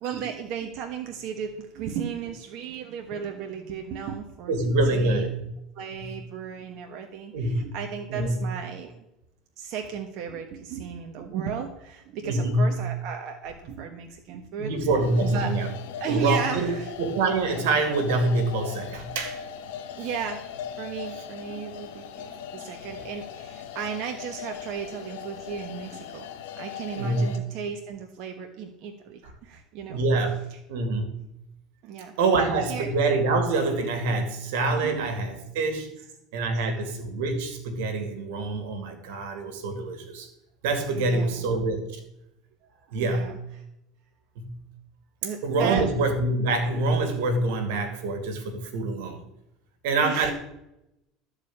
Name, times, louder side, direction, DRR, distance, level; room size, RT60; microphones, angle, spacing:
voice 1, 0.0-5.2 5.7-9.0 9.6-14.7 15.2-15.5 16.0-16.9 20.0-20.4 20.8-26.3 26.5-30.0 31.8-32.1 32.7-32.9 34.8-35.1 40.9-41.5 43.0-43.4 45.2-45.9 50.0-50.3, right 7 dB, 55° right, 4 dB, 1.3 m, -35 dB
voice 2, 4.5-5.5 6.0-6.2 7.3-7.8 8.1-8.4 12.2-12.8 14.6-15.7 16.1-16.7 17.0-19.4 20.0-20.1 27.0-27.3 29.9-30.4 30.7-31.2 32.2-35.9 36.3-40.3 40.6-42.0 42.9-43.4 44.4-44.6 45.4-49.2 49.8-50.3, right 2 dB, 85° right, 7 dB, 2.3 m, -25 dB
sound 1, 15.0-27.4, left 8 dB, 90° left, 1.5 m, -39 dB
13.0 x 5.0 x 8.6 m, 0.87 s
supercardioid pair, 135°, 0 cm